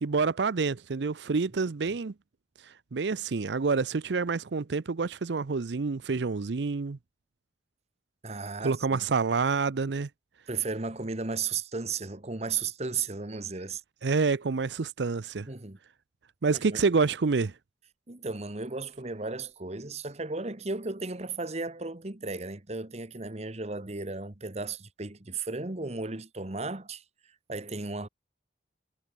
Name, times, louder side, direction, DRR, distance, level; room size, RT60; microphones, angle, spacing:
voice 1, 0.0-2.1 2.9-7.0 8.6-10.1 14.0-15.5 16.4-17.5, right 4 dB, 80° right, 0.6 m, -27 dB
voice 2, 8.2-9.0 10.5-13.8 15.5-15.8 16.5-16.8 18.1-27.0 27.5-28.1, right 4 dB, 40° right, 1.4 m, -35 dB
head